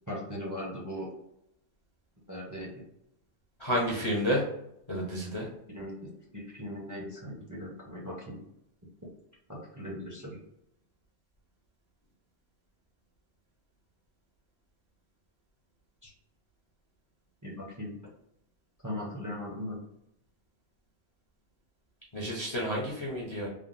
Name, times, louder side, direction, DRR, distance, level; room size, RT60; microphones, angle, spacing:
voice 1, 0.1-1.1 2.3-2.7 5.7-8.4 9.5-10.4 16.0-16.1 17.4-18.0 18.8-19.8, left 1 dB, 20° right, -4 dB, 0.7 m, -39 dB
voice 2, 3.6-4.4 4.9-5.5 22.1-23.5, equal, 30° left, -5 dB, 0.6 m, -30 dB
3.5 x 2.2 x 2.5 m, 0.78 s
omnidirectional pair, 1.2 m